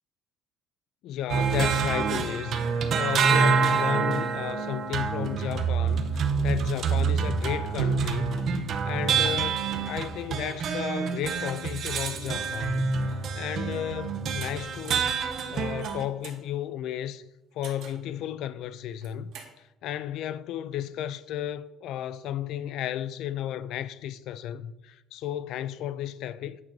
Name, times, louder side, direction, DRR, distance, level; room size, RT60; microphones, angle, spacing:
voice 1, 1.0-8.4 8.8-15.1 15.5-17.3 17.5-26.6, left 11 dB, 55° left, 0.4 m, -33 dB
sound 1, 1.3-16.1, right 5 dB, 40° right, 0.7 m, -27 dB
sound 2, 14.4-14.5 14.8-15.1 15.7-16.4 17.6-18.1 18.9-19.5, right 7 dB, 65° right, 1.7 m, -46 dB
9.1 x 3.9 x 5.9 m
cardioid pair, 175°, 0 cm